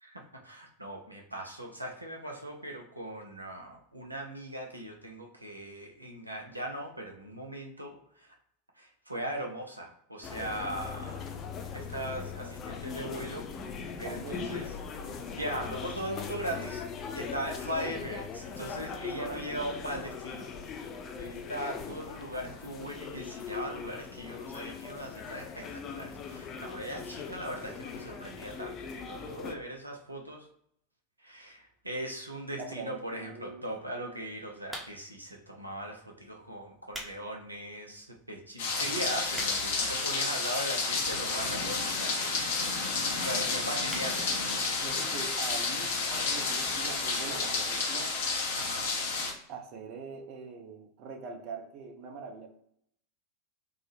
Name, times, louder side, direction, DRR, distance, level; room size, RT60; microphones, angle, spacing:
voice 1, 0.0-8.3 8.8-11.2 11.7-13.7 14.0-14.8 15.3-16.8 17.1-20.5 21.2-30.5 31.2-42.3 43.2-44.3 48.6-48.9, right 1 dB, 90° right, 1 dB, 0.5 m, -39 dB
sound 1, 10.2-29.6, left 6 dB, 35° left, 0.4 m, -40 dB
voice 2, 14.0-14.4 14.9-15.4 32.6-33.6 44.8-48.1 49.5-52.5, right 4 dB, 45° right, 4 dB, 0.6 m, -43 dB
sound 2, 34.7-35.2 35.9-36.1 36.7-37.2 37.6-37.7 38.3-38.4 38.6-38.7 39.0-39.8 40.6-40.7 41.5-41.8 42.1-42.2 42.4-42.5 42.7-42.8 43.1-43.4 43.8-44.1 44.5-44.6 44.8-44.9, right 1 dB, 10° right, 0.7 m, -42 dB
sound 3, 38.6-49.3, left 4 dB, 65° left, 0.7 m, -31 dB
3.5 x 2.1 x 3.2 m, 0.71 s
figure-of-eight pair, 85°, 0 cm